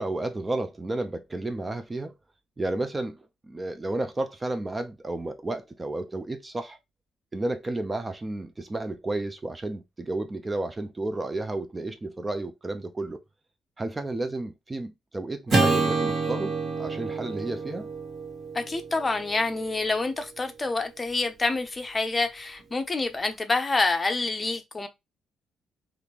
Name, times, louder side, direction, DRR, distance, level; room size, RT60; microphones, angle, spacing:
voice 1, 0.0-2.1 2.6-6.8 7.3-13.2 13.8-17.9, right 2 dB, 20° right, 0.5 m, -32 dB
Acoustic guitar / Strum, 15.5-19.9, right 3 dB, 50° right, 1.7 m, -28 dB
voice 2, 18.5-24.9, left 3 dB, 25° left, 0.6 m, -27 dB
3.5 x 2.5 x 2.9 m
cardioid pair, 90°, 0 cm